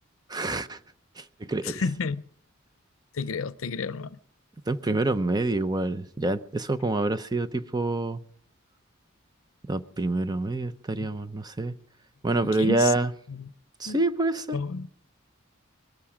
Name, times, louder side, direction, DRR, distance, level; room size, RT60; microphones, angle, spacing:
voice 1, 0.3-0.8 1.5-1.7 4.7-8.2 9.7-11.7 12.2-13.1 13.8-14.5, right 2 dB, 20° right, 0.7 m, -26 dB
voice 2, 1.6-2.2 3.1-4.2 12.6-12.9 13.3-13.5 13.9-14.0 14.5-14.9, left 4 dB, 80° left, 0.6 m, -31 dB
21.5 x 13.0 x 5.0 m
head